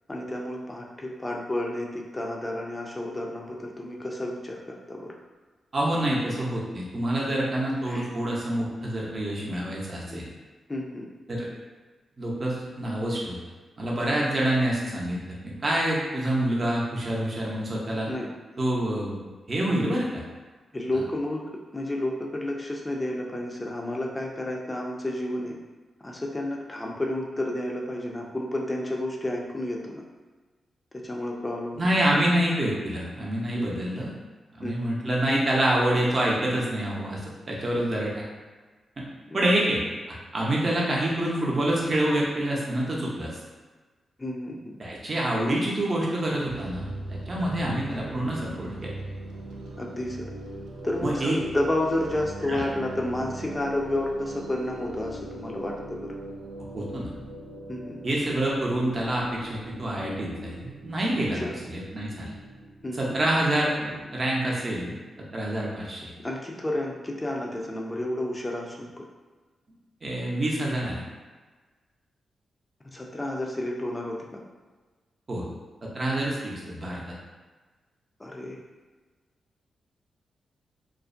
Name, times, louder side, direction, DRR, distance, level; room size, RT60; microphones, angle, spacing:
voice 1, 0.1-5.1 7.9-8.1 10.1-10.2 10.7-11.1 18.1-18.3 19.9-20.0 20.7-21.4 21.7-25.6 26.0-30.0 31.0-31.9 33.6-33.8 34.6-35.0 39.3-39.5 44.2-44.8 49.8-50.3 50.8-56.2 57.7-58.0 61.3-61.5 62.8-63.1 66.2-69.0 72.9-74.4 78.2-78.6, left 1 dB, 20° left, -1 dB, 0.4 m, -31 dB
voice 2, 5.7-10.3 11.3-11.5 12.2-13.4 13.8-15.2 15.4-18.1 18.6-19.2 19.5-20.1 20.9-21.0 31.8-34.1 34.6-37.2 37.5-38.2 39.0-39.1 39.3-39.8 40.3-43.3 44.8-48.9 51.0-51.4 52.5-52.6 56.7-57.1 58.0-62.3 63.0-64.9 65.3-66.1 70.0-71.0 75.3-75.4 75.8-77.0, right 1 dB, 40° right, -4 dB, 0.6 m, -27 dB
sound 1, 46.4-64.5, right 1 dB, 90° right, 0.3 m, -41 dB
2.4 x 2.0 x 2.5 m, 1.3 s
cardioid pair, 80°, 0 cm